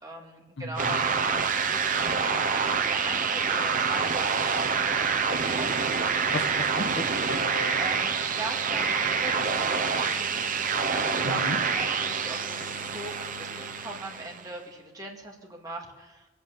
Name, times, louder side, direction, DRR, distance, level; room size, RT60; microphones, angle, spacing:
voice 1, 0.0-5.7 7.8-10.6 10.9-16.3, right 1 dB, 20° right, -1 dB, 2.4 m, -41 dB
voice 2, 0.6-0.9 6.3-7.8 11.2-11.6, left 2 dB, 65° left, 6 dB, 1.3 m, -35 dB
sound 1, 0.8-14.5, right 5 dB, 45° right, 1.0 m, -27 dB
22.5 x 8.6 x 7.4 m, 1.2 s
head